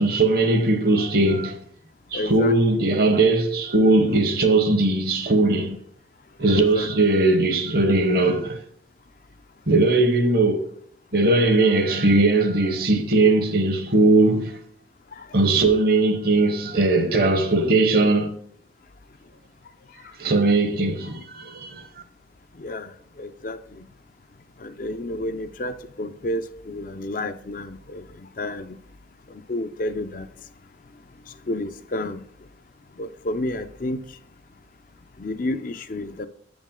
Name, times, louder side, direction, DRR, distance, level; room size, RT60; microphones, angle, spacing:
voice 1, 0.0-1.6 2.1-5.8 6.4-8.6 9.7-10.7 11.1-14.6 15.3-18.4 20.2-21.8, right 2 dB, 55° right, 1.0 m, -19 dB
voice 2, 2.1-2.8 6.5-6.9 15.1-15.3 20.0-20.1 22.5-23.9 24.6-28.8 29.3-30.3 31.3-32.2 33.0-34.2 35.2-36.3, left 1 dB, 50° left, 0.5 m, -31 dB
7.1 x 5.2 x 3.7 m
head